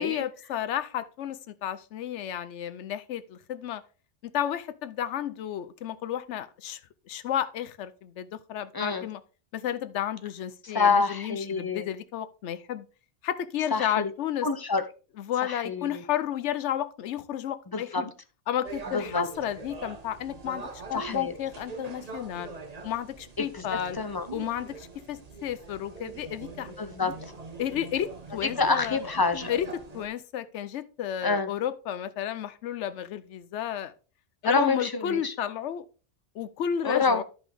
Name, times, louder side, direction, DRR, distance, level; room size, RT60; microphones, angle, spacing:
voice 1, 0.0-3.8 4.2-6.8 7.1-9.2 9.5-12.9 13.2-14.5 15.2-17.9 18.5-22.5 22.8-24.0 24.3-26.7 27.6-29.0 29.5-29.7 29.9-33.9 34.4-35.8 36.3-37.2, left 10 dB, 75° left, 13 dB, 1.0 m, -32 dB
voice 2, 8.7-9.1 10.6-11.9 13.7-14.1 14.4-14.8 15.4-16.0 17.7-18.1 18.9-19.3 20.9-21.3 23.4-24.3 26.8-27.1 28.6-29.6 31.2-31.5 34.4-35.3 36.8-37.2, left 4 dB, 30° left, 9 dB, 0.4 m, -27 dB
sound 1, 18.6-30.1, right 4 dB, 35° right, 1.1 m, -43 dB
11.0 x 5.1 x 3.4 m, 0.36 s
omnidirectional pair, 1.2 m